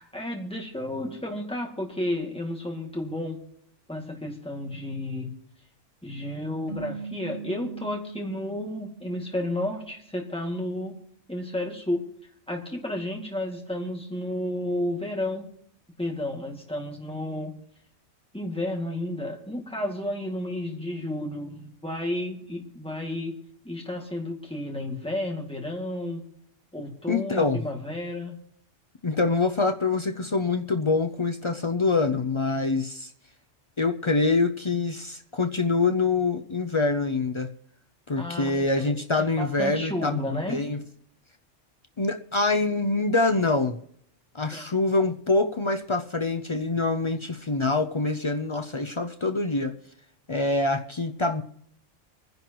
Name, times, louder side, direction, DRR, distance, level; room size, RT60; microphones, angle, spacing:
voice 1, 0.0-3.4 3.9-5.3 6.0-11.0 11.3-12.1 12.5-15.5 16.0-17.5 18.3-23.4 23.6-26.2 26.7-28.3 38.2-40.6 44.5-44.7, left 1 dB, 5° left, 0 dB, 2.1 m, -32 dB
sound 1, 6.7-10.0, right 5 dB, 35° right, 7.7 m, -40 dB
voice 2, 27.1-27.6 29.0-33.1 33.8-37.5 38.1-40.8 42.0-43.8 44.3-49.7 50.3-51.4, left 3 dB, 45° left, 6 dB, 0.4 m, -25 dB
25.5 x 10.5 x 3.0 m, 0.69 s
omnidirectional pair, 1.3 m